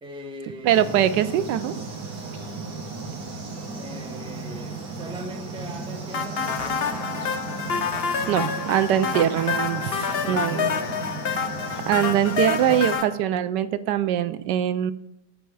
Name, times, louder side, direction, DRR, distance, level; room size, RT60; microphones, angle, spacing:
voice 1, 0.0-1.0 3.7-7.3 10.0-11.0, equal, 5° right, 0.6 m, -40 dB
voice 2, 0.6-1.9 8.3-10.7 11.9-14.9, right 11 dB, 85° right, 1.2 m, -23 dB
sound 1, 0.7-13.0, right 4 dB, 60° right, 2.2 m, -35 dB
sound 2, 6.1-13.0, left 6 dB, 55° left, 0.6 m, -28 dB
8.9 x 6.9 x 4.7 m
omnidirectional pair, 1.8 m